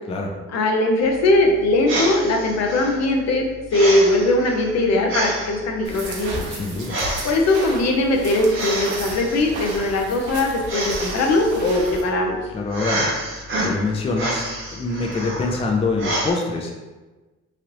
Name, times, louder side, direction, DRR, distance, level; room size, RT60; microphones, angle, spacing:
voice 1, 0.5-6.4 7.2-12.4, left 2 dB, 60° left, 2 dB, 0.6 m, -20 dB
sound 1, 1.0-16.3, right 1 dB, 40° right, 0.9 m, -30 dB
sound 2, 5.8-12.0, right 2 dB, 75° right, 0.8 m, -34 dB
voice 2, 6.5-7.0 12.5-16.7, left 3 dB, 20° left, 1 dB, 0.4 m, -25 dB
3.2 x 2.5 x 2.9 m, 1.2 s
cardioid pair, 90°, 30 cm